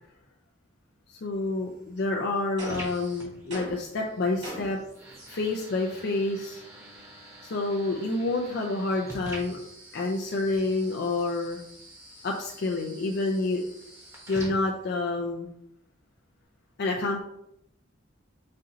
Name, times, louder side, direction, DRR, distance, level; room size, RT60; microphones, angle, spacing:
voice 1, 1.2-4.8 5.3-6.6 7.4-9.6 9.9-11.6 12.2-13.6 14.3-15.5 16.8-17.2, left 2 dB, 60° left, 0 dB, 0.4 m, -28 dB
sound 1, 1.3-15.3, right 1 dB, 15° right, 0.9 m, -47 dB
sound 2, 2.6-3.0 3.5-3.9 4.4-4.9, right 1 dB, 60° right, 1.6 m, -39 dB
4.3 x 2.6 x 3.8 m, 0.75 s
head